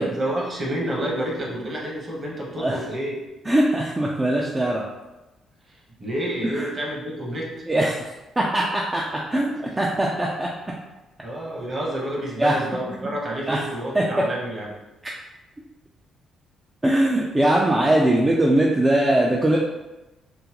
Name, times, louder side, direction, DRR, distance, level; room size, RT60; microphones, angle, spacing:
voice 1, 0.0-3.1 5.7-7.5 11.2-14.8, right 1 dB, 40° right, -2 dB, 1.0 m, -29 dB
voice 2, 3.5-4.8 6.6-6.7 7.7-8.0 8.4-10.5 12.4-12.5 13.5-13.6 13.9-14.0 16.8-19.6, right 1 dB, 20° right, -3 dB, 0.4 m, -21 dB
3.7 x 2.1 x 2.9 m, 1.0 s
cardioid pair, 90°, 0 cm